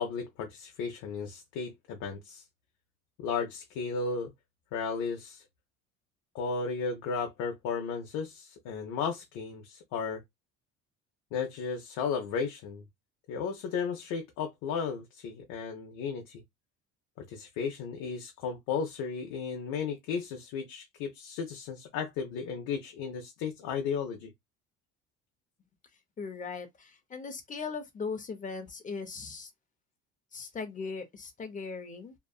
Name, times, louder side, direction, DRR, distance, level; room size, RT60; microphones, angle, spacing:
voice 1, 0.0-2.4 3.2-4.3 4.7-5.4 6.3-10.2 11.3-12.8 13.3-16.4 17.2-24.3, left 5 dB, 75° left, 0.7 m, -34 dB
voice 2, 26.2-29.5 30.3-32.1, left 5 dB, 25° left, 0.7 m, -39 dB
2.7 x 2.4 x 2.3 m
cardioid pair, 115°, 32 cm